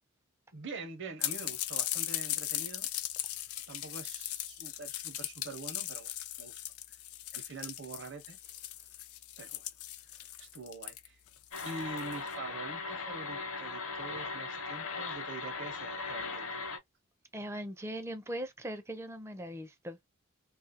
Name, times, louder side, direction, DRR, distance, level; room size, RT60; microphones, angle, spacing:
voice 1, 0.5-2.9 3.7-6.1 6.4-6.5 7.3-8.4 9.4-9.7 10.1-11.2 11.6-16.6, right 3 dB, 55° right, 0.7 m, -45 dB
sound 1, 1.2-12.3, left 13 dB, 85° left, 0.4 m, -38 dB
sound 2, 11.5-16.8, left 4 dB, 60° left, 0.8 m, -38 dB
voice 2, 17.3-20.0, right 1 dB, 10° right, 0.4 m, -40 dB
2.7 x 2.4 x 2.7 m
head